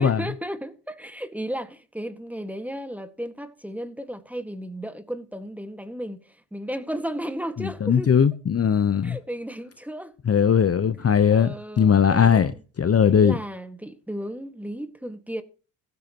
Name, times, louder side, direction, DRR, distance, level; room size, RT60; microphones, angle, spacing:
voice 1, 0.0-8.1 9.0-10.1 11.3-12.6 13.0-15.4, equal, 5° right, 1.7 m, -34 dB
voice 2, 7.6-9.2 10.3-12.5 12.8-13.4, left 7 dB, 35° left, 0.9 m, -19 dB
15.5 x 13.5 x 3.0 m
supercardioid pair, 65°, 45 cm